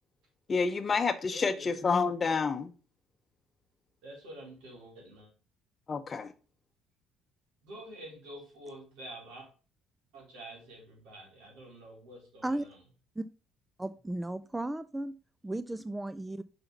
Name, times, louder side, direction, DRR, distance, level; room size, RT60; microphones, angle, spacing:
voice 1, 0.5-2.7 5.9-6.3, left 5 dB, 35° left, 10 dB, 0.8 m, -29 dB
voice 2, 1.3-1.8 4.0-5.3 7.6-9.5 10.1-12.8, right 1 dB, 85° right, -1 dB, 3.9 m, -48 dB
voice 3, 13.8-15.1 15.4-16.4, right 1 dB, 10° right, 14 dB, 0.4 m, -35 dB
5.7 x 5.6 x 4.0 m, 0.36 s
cardioid pair, 90°, 0 cm